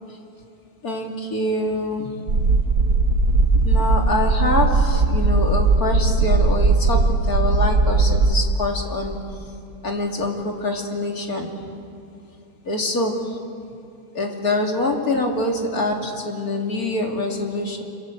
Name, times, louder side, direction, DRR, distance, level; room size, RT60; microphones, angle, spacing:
voice 1, 0.8-2.1 3.5-9.2 9.8-11.5 12.6-13.1 14.1-17.8, left 2 dB, 55° left, 1 dB, 3.2 m, -25 dB
sound 1, 2.3-8.3, right 3 dB, 60° right, 2.2 m, -18 dB
27.0 x 27.0 x 7.9 m, 2.5 s
omnidirectional pair, 1.8 m